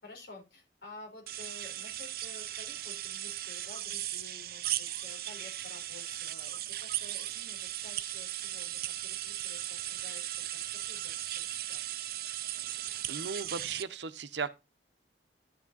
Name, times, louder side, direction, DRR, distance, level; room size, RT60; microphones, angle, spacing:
voice 1, 0.0-11.8, left 3 dB, 60° left, 4.5 m, -52 dB
sound 1, 1.3-13.8, right 13 dB, 55° right, 0.6 m, -37 dB
voice 2, 13.1-14.5, right 5 dB, 75° right, 0.9 m, -36 dB
11.5 x 6.0 x 4.1 m
head